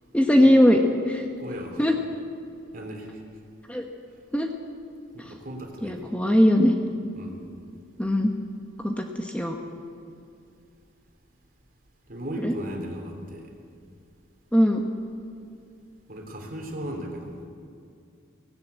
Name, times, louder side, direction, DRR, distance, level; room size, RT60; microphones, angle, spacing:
voice 1, 0.1-1.2 1.8-2.0 3.7-3.9 4.3-4.5 5.2-5.3 5.8-6.7 8.0-8.3 8.8-9.6 12.4-12.5 14.5-14.8, equal, 5° left, 3 dB, 1.1 m, -20 dB
voice 2, 1.4-1.8 2.7-3.2 5.1-6.1 7.1-7.4 12.1-13.5 16.1-17.5, equal, 45° right, 3 dB, 3.1 m, -36 dB
18.0 x 17.5 x 8.2 m, 2.4 s
head